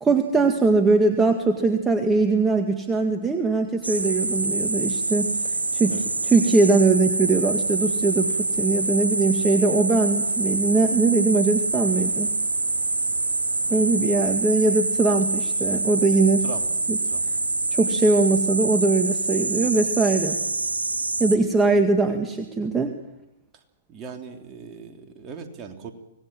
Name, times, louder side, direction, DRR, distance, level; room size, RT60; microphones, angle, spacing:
voice 1, 0.0-5.3 5.7-12.3 13.7-16.4 16.9-17.0 17.7-20.4 21.2-22.9, right 3 dB, 15° right, 5 dB, 1.8 m, -21 dB
sound 1, 3.8-21.4, right 2 dB, 90° right, 1.8 m, -25 dB
voice 2, 13.6-14.3 16.4-16.7 17.0-17.3 21.7-21.8 23.9-25.9, right 5 dB, 30° right, 3 dB, 3.2 m, -40 dB
25.0 x 19.0 x 7.6 m, 0.94 s
figure-of-eight pair, 115°, 0 cm